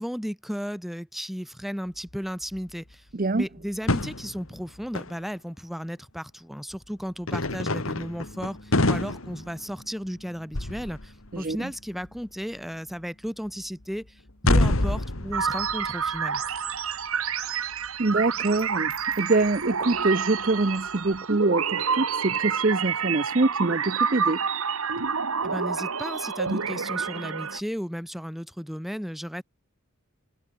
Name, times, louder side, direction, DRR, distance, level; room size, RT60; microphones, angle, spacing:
voice 1, 0.0-3.0 3.4-16.4 25.4-29.4, equal, ahead, 6.0 m, -34 dB
sound 1, 2.1-2.2 2.4-2.9 3.4-5.2 6.7-6.8 7.2-10.2 10.5-11.6 11.9-12.2 13.5-13.8 14.3-17.2 17.7-17.9 18.6-18.7 19.1-19.2 19.4-19.5 19.9-20.0 21.1-21.2, left 1 dB, 70° left, 2.6 m, -28 dB
voice 2, 3.1-3.4 11.3-11.7 17.5-17.6 18.0-24.4, right 2 dB, 40° right, 0.8 m, -25 dB
sound 2, 7.4-23.3, equal, 45° left, 7.3 m, -55 dB
sound 3, 15.3-27.6, right 6 dB, 75° right, 1.8 m, -28 dB
head